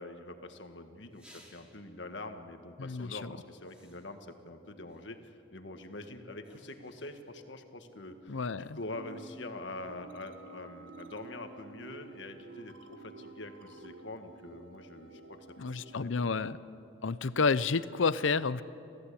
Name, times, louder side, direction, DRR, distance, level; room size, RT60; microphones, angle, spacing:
voice 1, 0.0-16.4, left 2 dB, 70° left, 6 dB, 1.7 m, -45 dB
sound 1, 1.1-2.0 2.9-3.1 3.6-4.3 4.9-5.5 6.4-7.5 8.6-8.7, equal, 5° right, 3.0 m, -61 dB
voice 2, 2.8-3.3 8.3-8.8 15.6-18.6, left 4 dB, 85° left, 16 dB, 0.7 m, -30 dB
sound 2, 8.9-16.0, right 3 dB, 75° right, 1.6 m, -51 dB
27.5 x 14.5 x 8.5 m, 2.7 s
head